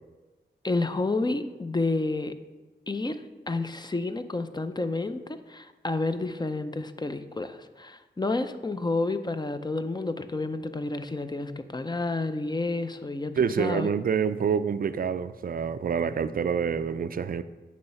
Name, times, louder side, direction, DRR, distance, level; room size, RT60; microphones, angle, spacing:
voice 1, 0.6-2.3 2.9-13.9, left 2 dB, 20° left, 0.5 m, -30 dB
voice 2, 13.4-17.4, right 7 dB, 50° right, 0.4 m, -27 dB
9.4 x 3.2 x 5.7 m
cardioid pair, 50°, 19 cm